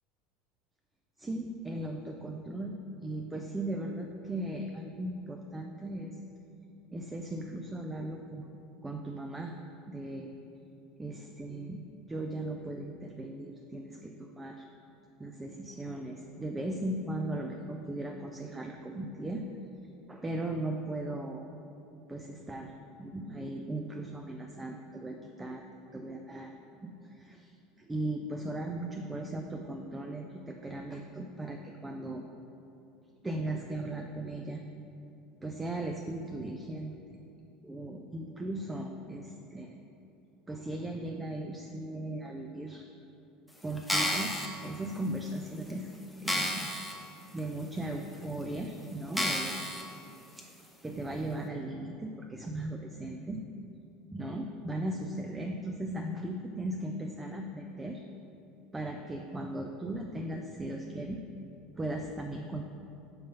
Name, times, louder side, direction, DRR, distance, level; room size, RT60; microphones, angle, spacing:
voice 1, 1.2-6.2 6.9-8.5 8.8-9.6 9.9-10.3 11.0-11.8 12.1-14.7 15.2-19.5 20.1-21.5 22.1-22.7 23.0-25.6 25.9-32.2 33.2-34.6 35.4-37.0 37.6-39.7 40.5-42.8 43.6-45.9 46.2-46.7 47.3-49.6 50.8-53.4 54.1-58.0 58.7-61.2 61.8-62.6, right 1 dB, 15° right, 2 dB, 0.4 m, -37 dB
sound 1, 43.8-44.5 45.2-45.3 45.7-45.8 46.3-46.9 47.4-47.5 48.2-48.3 49.1-49.8 50.4-50.5, left 1 dB, 5° left, 0.9 m, -31 dB
5.5 x 3.7 x 5.5 m, 2.7 s
figure-of-eight pair, 70°, 0 cm